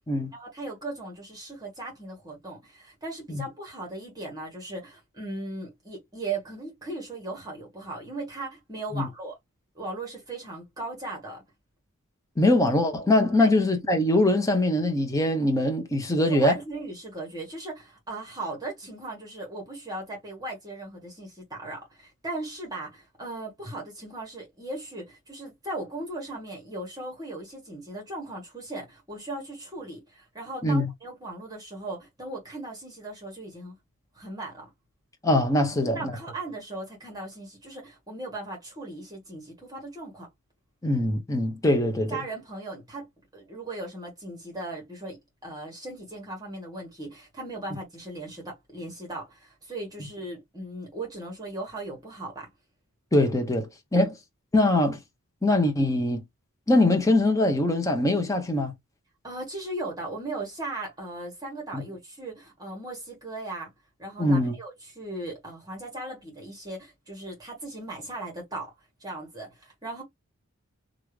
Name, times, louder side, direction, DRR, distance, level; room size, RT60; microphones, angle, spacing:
voice 1, 0.3-9.3 9.7-11.4 13.4-13.5 16.2-33.8 34.1-34.7 35.8-40.3 42.1-52.5 53.9-54.1 59.2-63.7 64.0-68.7 69.0-70.0, right 2 dB, 15° right, 1.5 m, -38 dB
voice 2, 12.4-16.5 30.6-30.9 35.2-36.0 40.8-42.2 53.1-54.1 54.5-55.0 55.4-56.2 56.7-58.7 61.7-61.8 64.2-64.5, left 1 dB, 15° left, 0.7 m, -22 dB
3.1 x 2.5 x 3.2 m
head